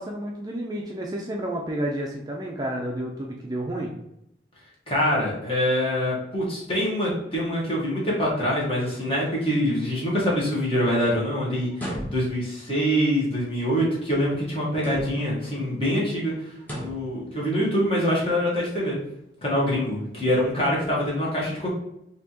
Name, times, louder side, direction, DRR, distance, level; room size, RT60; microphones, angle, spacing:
voice 1, 0.0-3.9, right 1 dB, 20° right, -1 dB, 0.4 m, -30 dB
voice 2, 4.9-19.0 19.4-21.7, equal, 30° left, -6 dB, 1.4 m, -25 dB
sound 1, 11.7-12.5 14.7-15.4 16.6-17.1, equal, 10° left, 0.8 m, -35 dB
4.3 x 2.8 x 2.9 m, 0.81 s
head